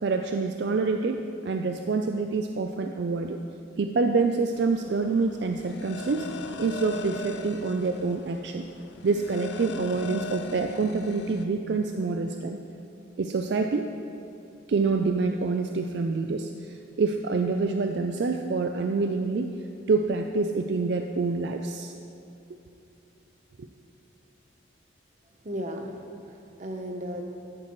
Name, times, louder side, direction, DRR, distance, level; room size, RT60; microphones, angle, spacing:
voice 1, 0.0-3.4 3.8-6.3 6.6-8.7 9.0-12.6 13.2-13.9 14.7-19.6 19.9-21.9 23.6-23.7, right 4 dB, 65° right, 5 dB, 0.4 m, -27 dB
sound 1, 4.5-11.5, left 2 dB, 65° left, 0.6 m, -39 dB
voice 2, 25.4-27.2, equal, 40° right, 3 dB, 0.9 m, -35 dB
13.0 x 9.6 x 3.1 m, 2.8 s
head